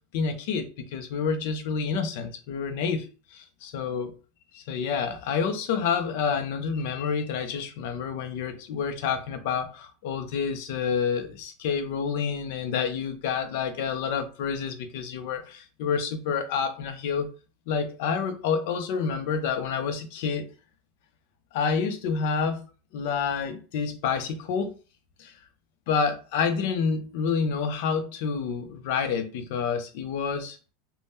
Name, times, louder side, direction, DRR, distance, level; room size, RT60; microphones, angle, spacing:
voice 1, 0.1-4.1 4.5-17.3 17.7-20.5 21.5-22.6 22.9-24.7 25.2-25.4 25.9-30.6, left 6 dB, 50° left, 0.5 m, -28 dB
2.7 x 2.1 x 3.4 m
supercardioid pair, 175°, 0 cm